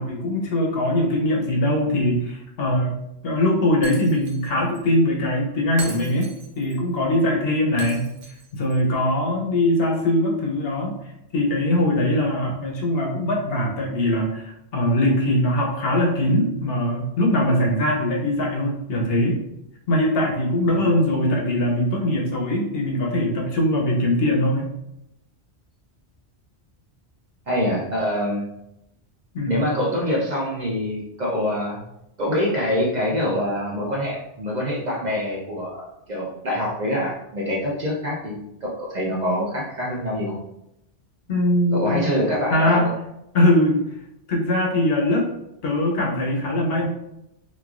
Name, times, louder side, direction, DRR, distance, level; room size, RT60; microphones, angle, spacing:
voice 1, 0.0-2.9 3.2-8.1 8.5-10.9 11.3-19.4 19.9-24.7 29.3-29.7 41.3-42.1 42.5-42.8 43.3-43.8 44.3-45.3 45.6-46.9, left 1 dB, 65° left, -1 dB, 0.8 m, -21 dB
Shatter, 3.8-4.5 4.7-4.8 5.8-6.8 7.8-8.8, right 3 dB, 90° right, 0.9 m, -39 dB
voice 2, 27.5-28.4 29.4-31.8 32.2-40.4 41.7-42.9, equal, 50° right, -4 dB, 0.6 m, -25 dB
3.0 x 2.3 x 2.4 m, 0.83 s
omnidirectional pair, 1.1 m